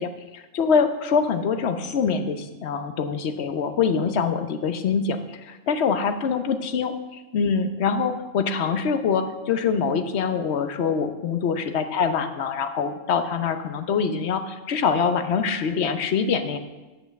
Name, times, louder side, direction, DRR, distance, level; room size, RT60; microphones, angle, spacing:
voice 1, 0.0-16.6, left 6 dB, 65° left, 9 dB, 1.0 m, -24 dB
7.9 x 7.2 x 7.0 m, 1.2 s
omnidirectional pair, 1.3 m